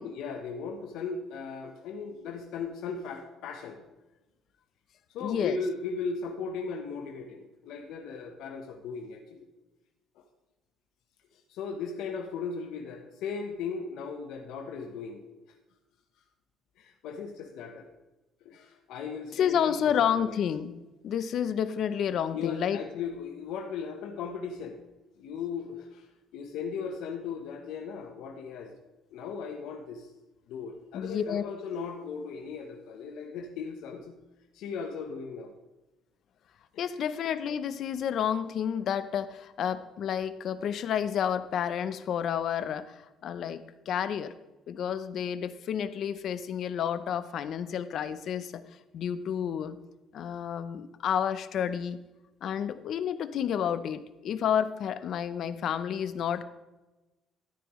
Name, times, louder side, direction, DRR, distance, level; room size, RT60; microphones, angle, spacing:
voice 1, 0.0-3.8 5.1-9.5 10.2-10.3 11.3-15.2 16.8-17.9 18.4-19.8 20.1-20.4 22.3-24.8 25.2-28.7 29.1-30.1 30.5-34.1 34.5-35.5 36.7-36.9, left 5 dB, 80° left, 3 dB, 0.9 m, -37 dB
voice 2, 5.2-5.6 19.3-20.7 21.0-22.8 30.9-31.4 36.8-44.3 44.7-48.6 48.9-49.8 50.1-52.0 52.4-56.4, left 8 dB, 55° left, 13 dB, 0.6 m, -30 dB
13.0 x 9.8 x 3.1 m, 1.1 s
cardioid pair, 150°, 0 cm